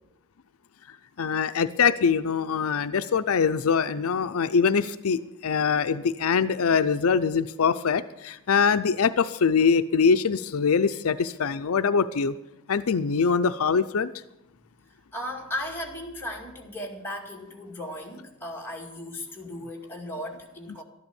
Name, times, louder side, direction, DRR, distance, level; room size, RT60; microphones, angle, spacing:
voice 1, 1.2-12.3 12.7-14.1, left 6 dB, 80° left, 11 dB, 0.5 m, -23 dB
voice 2, 15.1-20.8, left 1 dB, 10° left, -1 dB, 2.2 m, -36 dB
13.0 x 11.0 x 7.0 m, 0.87 s
head